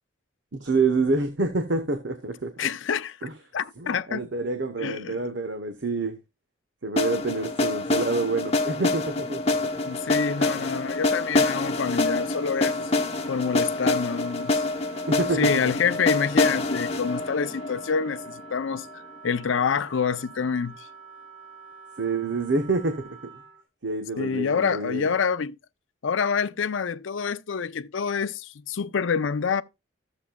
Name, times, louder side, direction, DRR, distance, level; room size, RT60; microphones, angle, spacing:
voice 1, 0.5-2.5 3.2-3.3 3.8-6.2 6.8-9.8 15.1-15.5 22.0-23.2 23.8-25.1, right 3 dB, 65° right, 1.0 m, -27 dB
voice 2, 2.6-3.2 3.5-4.2 4.8-5.2 9.9-12.9 13.3-14.6 15.3-18.9 19.2-20.7 24.2-25.6 26.0-29.6, left 6 dB, 80° left, 0.5 m, -27 dB
sound 1, 7.0-18.9, left 2 dB, 35° left, 1.0 m, -26 dB
Wind instrument woodwind instrument, 9.5-23.6, right 5 dB, 25° right, 6.8 m, -47 dB
14.0 x 7.3 x 2.3 m
head